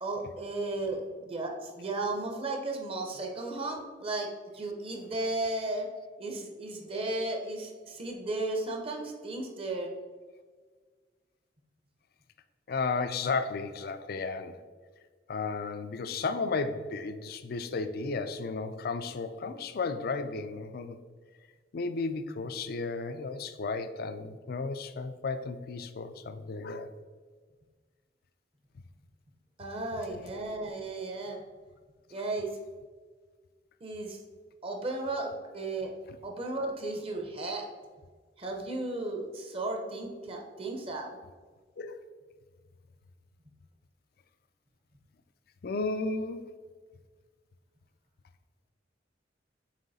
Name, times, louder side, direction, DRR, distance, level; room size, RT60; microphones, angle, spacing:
voice 1, 0.0-5.9 6.2-9.9 29.6-31.4 32.1-32.5 33.8-34.2 34.6-35.9 36.2-37.7 38.4-41.2, right 2 dB, 35° right, 2 dB, 0.8 m, -34 dB
voice 2, 12.7-14.6 15.3-21.0 21.7-26.9 41.8-42.0 45.6-46.5, left 4 dB, 55° left, 10 dB, 0.4 m, -33 dB
7.5 x 3.1 x 4.1 m, 1.5 s
head